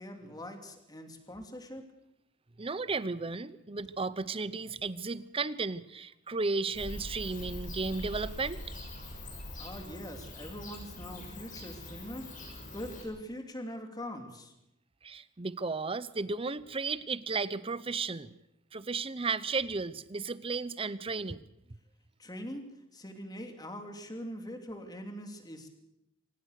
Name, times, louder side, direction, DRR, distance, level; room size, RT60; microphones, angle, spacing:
voice 1, 0.0-1.9 9.6-12.3 12.7-14.5 22.2-25.7, equal, 20° left, 5 dB, 2.9 m, -42 dB
voice 2, 2.6-8.6 15.0-18.3 18.7-21.4, right 4 dB, 30° right, 16 dB, 0.7 m, -34 dB
Bird / Cricket, 6.7-13.0, left 1 dB, 45° left, 6.9 m, -43 dB
25.0 x 18.5 x 6.6 m, 0.85 s
head